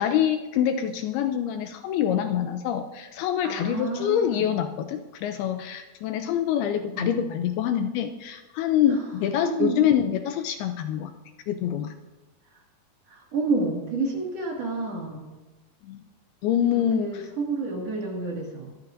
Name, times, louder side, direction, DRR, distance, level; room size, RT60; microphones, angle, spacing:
voice 1, 0.0-11.1 11.5-11.9 15.8-16.0 16.4-17.3, left 10 dB, 80° left, 7 dB, 2.4 m, -25 dB
voice 2, 3.4-4.5 7.0-7.1 8.9-9.0 9.4-9.9 12.5-12.6 13.1-15.3 17.0-18.8, right 3 dB, 45° right, -2 dB, 2.7 m, -30 dB
23.0 x 13.5 x 2.6 m, 1.1 s
omnidirectional pair, 4.8 m